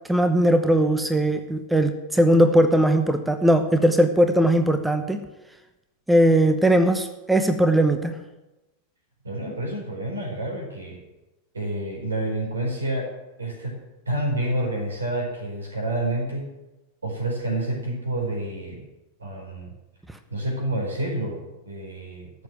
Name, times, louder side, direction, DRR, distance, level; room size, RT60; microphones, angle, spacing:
voice 1, 0.1-5.2 6.1-8.1, right 1 dB, 5° right, 8 dB, 0.9 m, -19 dB
voice 2, 9.2-11.0 11.5-16.5 17.0-18.8 19.2-19.7 20.3-22.4, right 1 dB, 75° right, 1 dB, 4.4 m, -29 dB
14.0 x 6.9 x 8.8 m, 1.0 s
figure-of-eight pair, 90°, 0 cm